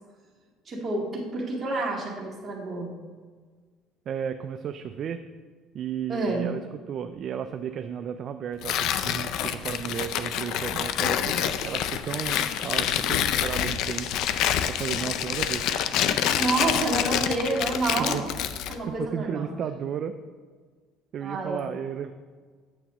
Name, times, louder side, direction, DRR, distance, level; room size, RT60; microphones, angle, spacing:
voice 1, 0.7-2.9 6.1-6.5 16.3-18.2 18.7-19.5 21.2-21.6, right 2 dB, 30° right, -3 dB, 1.9 m, -28 dB
voice 2, 4.1-5.2 5.7-6.6 6.9-14.4 14.7-16.0 16.6-16.8 18.0-18.3 18.9-20.2 21.1-22.1, right 8 dB, 45° right, 8 dB, 0.3 m, -34 dB
Tearing, 8.6-18.8, left 10 dB, 65° left, 0.4 m, -27 dB
8.8 x 6.9 x 3.0 m, 1.5 s
cardioid pair, 120°, 0 cm